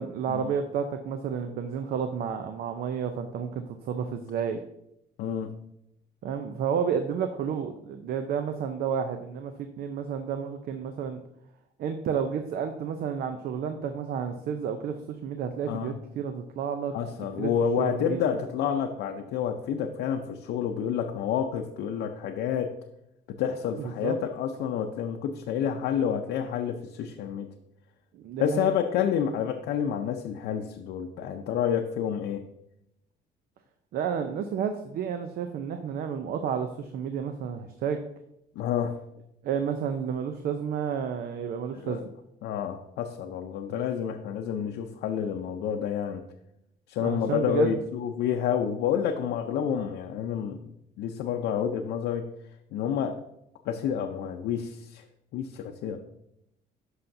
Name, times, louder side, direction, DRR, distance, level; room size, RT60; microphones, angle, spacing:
voice 1, 0.0-4.6 6.2-11.2 11.8-16.9 17.4-17.5 17.8-18.2 23.8-24.2 28.1-28.7 33.9-38.0 39.4-42.1 47.0-47.7, right 7 dB, 65° right, 7 dB, 0.6 m, -31 dB
voice 2, 5.2-5.5 15.7-15.9 16.9-22.7 23.3-27.5 28.4-32.4 38.6-39.0 41.7-42.0 42.4-46.2 46.9-50.7 51.0-52.3 52.7-53.2 53.7-55.0 55.3-56.0, left 8 dB, 80° left, 3 dB, 0.6 m, -29 dB
11.5 x 5.7 x 2.6 m, 0.81 s
cardioid pair, 110°, 17 cm